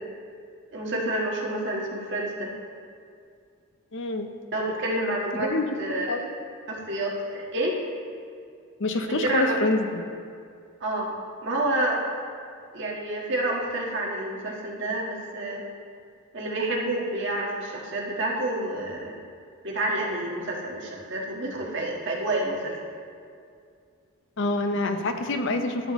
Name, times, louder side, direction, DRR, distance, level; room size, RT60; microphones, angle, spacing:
voice 1, 0.7-2.5 4.5-5.5 5.8-6.3 6.7-7.8 9.0-9.6 10.8-11.1 11.4-12.0 12.7-15.6 16.3-19.1 19.6-22.7, right 1 dB, 55° right, -2 dB, 1.5 m, -28 dB
voice 2, 3.9-4.3 5.4-5.7 6.1-6.3 8.8-10.0 24.4-25.9, left 2 dB, 55° left, 6 dB, 0.7 m, -26 dB
13.5 x 7.1 x 3.0 m, 2.3 s
head